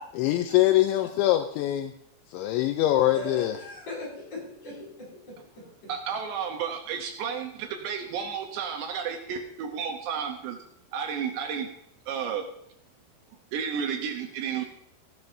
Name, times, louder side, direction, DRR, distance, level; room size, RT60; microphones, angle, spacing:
voice 1, 0.2-1.9 2.3-3.5, left 14 dB, 80° left, 7 dB, 2.8 m, -23 dB
voice 2, 3.1-5.9, left 2 dB, 40° left, -4 dB, 7.1 m, -39 dB
voice 3, 5.9-10.6 10.9-11.7 12.1-12.5 13.5-14.7, right 7 dB, 75° right, 4 dB, 2.8 m, -32 dB
16.0 x 12.5 x 2.7 m, 0.74 s
omnidirectional pair, 5.5 m